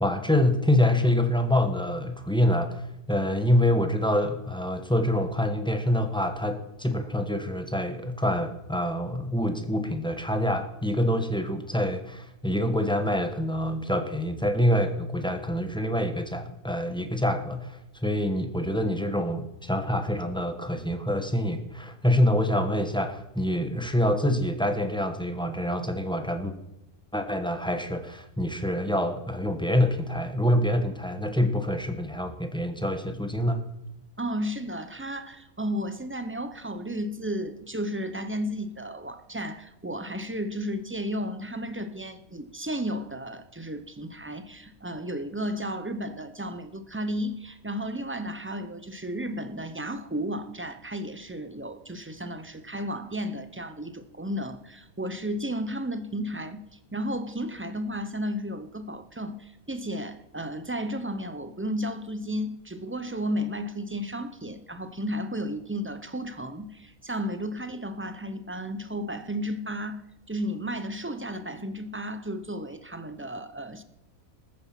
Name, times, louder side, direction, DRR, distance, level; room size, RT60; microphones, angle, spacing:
voice 1, 0.0-26.5 27.1-33.6, left 1 dB, 5° left, 7 dB, 1.1 m, -26 dB
voice 2, 34.2-70.0 70.3-73.8, equal, 15° right, 9 dB, 0.4 m, -33 dB
14.0 x 9.7 x 5.9 m, 0.90 s
omnidirectional pair, 1.5 m